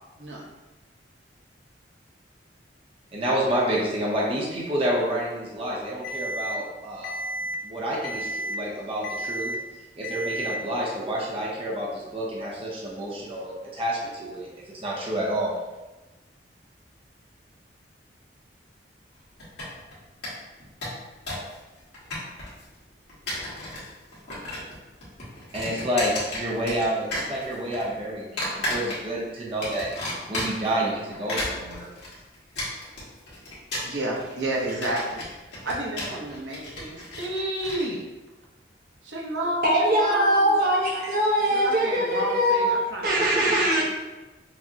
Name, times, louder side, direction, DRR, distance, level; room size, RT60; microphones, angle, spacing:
voice 1, 3.1-7.2 7.6-9.5 10.0-14.5 14.8-15.6 25.5-29.9 30.3-31.9, right 1 dB, 30° right, -5 dB, 0.6 m, -29 dB
Alarm, 6.0-6.5 7.0-7.5 8.0-8.5 9.0-9.5 10.0-10.5, right 1 dB, 50° left, 0.4 m, -32 dB
sound 1, 19.4-19.9 20.2-20.3 20.6-21.5 21.8-22.6 23.1-23.9 24.1-24.8 25.0-26.9 27.1-27.8 28.4-29.2 29.6-30.7 31.1-37.8, left 1 dB, 70° left, 1.5 m, -33 dB
voice 2, 33.8-38.0 39.0-40.6 41.5-43.8, right 1 dB, 85° right, -2 dB, 0.8 m, -31 dB
voice 3, 39.6-43.8, equal, 55° right, -4 dB, 1.0 m, -22 dB
5.8 x 2.0 x 2.7 m, 1.1 s
head